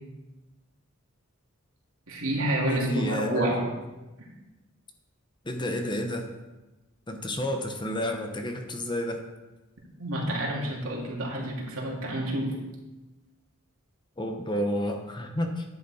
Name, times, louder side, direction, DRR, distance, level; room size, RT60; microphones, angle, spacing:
voice 1, 2.1-3.7 10.0-12.6, right 1 dB, 85° right, -2 dB, 2.7 m, -29 dB
voice 2, 2.7-3.5 5.4-6.3 7.1-9.2 14.2-15.6, left 1 dB, 20° left, 4 dB, 1.0 m, -30 dB
10.5 x 8.3 x 4.3 m, 1.1 s
head